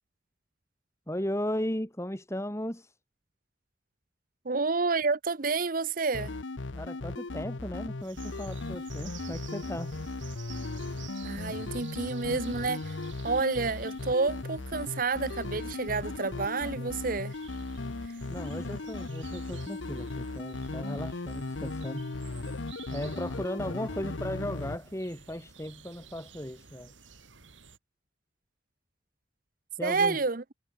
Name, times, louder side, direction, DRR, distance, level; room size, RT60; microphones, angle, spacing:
voice 1, 1.1-2.9 6.7-10.0 18.3-22.1 22.9-26.9 29.8-30.2, equal, 15° left, 3.4 m, -36 dB
voice 2, 4.4-6.3 11.2-13.0 13.2-17.3 29.8-30.4, right 4 dB, 45° right, 0.9 m, -29 dB
sound 1, 6.1-24.8, left 2 dB, 80° left, 1.0 m, -37 dB
sound 2, 8.0-27.8, right 7 dB, 85° right, 3.4 m, -53 dB
head